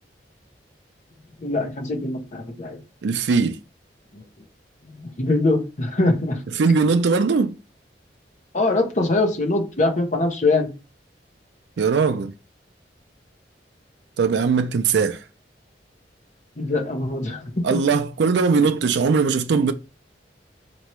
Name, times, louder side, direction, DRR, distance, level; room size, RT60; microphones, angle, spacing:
voice 1, 1.4-2.8 4.1-4.2 4.8-6.4 8.5-10.7 16.6-17.8, left 2 dB, 45° left, 1.0 m, -23 dB
voice 2, 3.0-3.6 6.5-7.5 11.8-12.3 14.2-15.2 17.6-19.7, right 5 dB, 75° right, 0.4 m, -20 dB
4.4 x 3.0 x 3.0 m
head